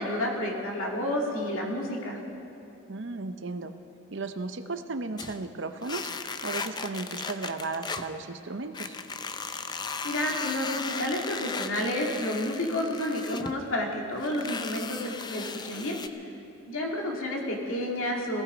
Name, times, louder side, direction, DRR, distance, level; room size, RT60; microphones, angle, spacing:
voice 1, 0.0-2.2 10.0-16.0 16.7-18.4, left 1 dB, 70° left, -1 dB, 2.5 m, -30 dB
voice 2, 2.9-3.7 4.1-6.1 6.4-9.0, right 3 dB, 55° right, 9 dB, 0.6 m, -35 dB
sound 1, 5.2-5.4 5.8-8.1 8.7-13.6 14.1-16.1, left 4 dB, 20° left, 0.4 m, -36 dB
18.5 x 15.5 x 5.1 m, 2.8 s
head